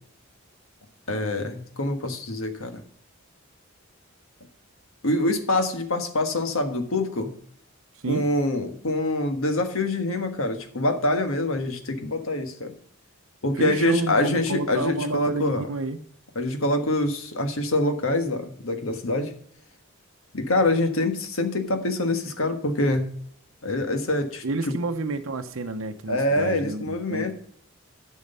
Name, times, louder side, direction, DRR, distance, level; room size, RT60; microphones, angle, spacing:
voice 1, 1.1-2.8 5.0-7.3 8.1-12.7 13.4-15.7 16.3-19.3 20.3-23.1 23.6-24.4 26.1-27.3, left 1 dB, 75° left, 6 dB, 1.5 m, -25 dB
voice 2, 13.5-16.0 24.4-27.3, right 3 dB, 70° right, 7 dB, 0.7 m, -30 dB
11.0 x 6.3 x 5.4 m, 0.63 s
head